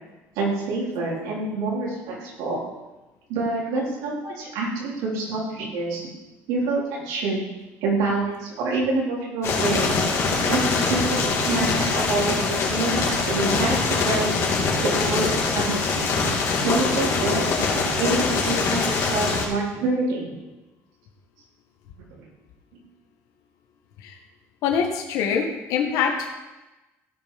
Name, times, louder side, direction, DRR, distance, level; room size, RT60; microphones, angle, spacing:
voice 1, 0.4-2.6 3.3-6.0 6.5-7.4 7.8-10.0 10.5-14.3 14.8-16.1 16.6-17.4 17.9-20.4 22.1-22.2, right 3 dB, 85° right, -4 dB, 4.3 m, -27 dB
sound 1, 9.4-19.5, left 4 dB, 50° left, 3.0 m, -23 dB
voice 2, 24.6-26.3, left 7 dB, 70° left, 2 dB, 1.5 m, -24 dB
15.5 x 5.7 x 5.2 m, 1.1 s
cardioid pair, 120°, 6 cm